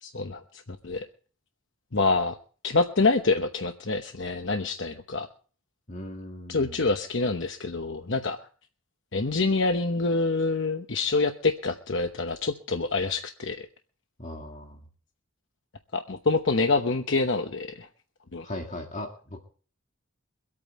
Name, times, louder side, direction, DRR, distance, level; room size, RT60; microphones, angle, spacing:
voice 1, 0.0-0.4 0.8-1.1 1.9-2.4 2.6-5.3 6.5-8.4 9.1-13.7 15.9-17.9 18.3-18.4, left 3 dB, 60° left, 6 dB, 1.0 m, -26 dB
voice 2, 5.9-6.8 14.2-14.8 18.4-19.4, left 1 dB, 35° left, 2 dB, 2.0 m, -38 dB
24.0 x 8.8 x 4.3 m, 0.42 s
head